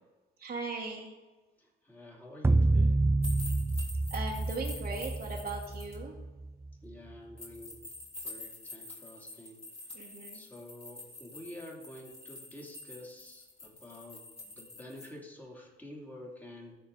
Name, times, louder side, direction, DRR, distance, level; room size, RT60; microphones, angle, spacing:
voice 1, 0.4-1.1 4.1-6.2 9.9-10.4, right 3 dB, 45° right, -3 dB, 1.3 m, -38 dB
voice 2, 1.6-3.0 6.8-7.8 8.2-10.0 10.3-16.7, left 1 dB, 10° left, -2 dB, 2.6 m, -49 dB
sound 1, 2.4-6.9, right 2 dB, 10° right, 0.4 m, -28 dB
sound 2, 3.2-5.9 7.4-15.1, left 2 dB, 30° left, 3.0 m, -47 dB
13.5 x 4.6 x 3.8 m, 1.2 s
cardioid pair, 90°, 20 cm